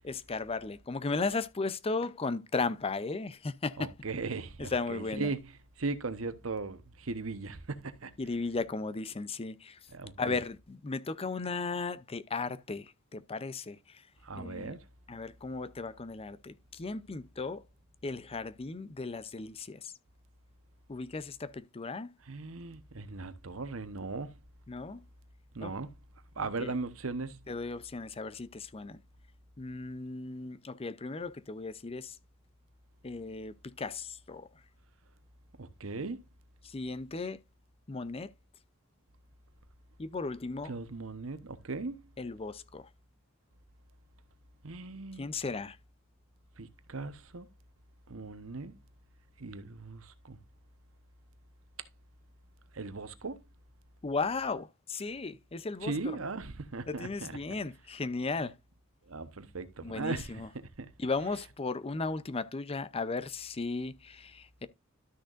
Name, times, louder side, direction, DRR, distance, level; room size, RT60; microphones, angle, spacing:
voice 1, 0.0-3.9 4.6-5.3 8.2-9.8 10.2-14.0 14.3-14.8 15.1-17.6 18.0-19.9 20.9-22.1 24.7-25.0 25.6-25.7 26.4-26.7 27.5-29.0 29.6-32.2 33.0-34.5 36.6-37.4 37.9-38.3 40.0-40.7 42.2-42.9 45.2-45.8 54.0-56.2 56.9-58.5 59.8-60.5 61.0-64.7, left 3 dB, 30° left, 0.5 m, -36 dB
voice 2, 3.8-5.5 5.8-8.1 9.9-10.4 14.2-14.9 22.3-24.4 25.5-25.9 26.4-27.4 35.6-36.2 40.7-42.0 44.6-45.3 46.6-47.5 48.1-48.8 49.4-50.4 52.7-53.4 55.8-57.4 59.1-60.9, right 3 dB, 85° right, 1.0 m, -38 dB
12.5 x 6.3 x 2.5 m
head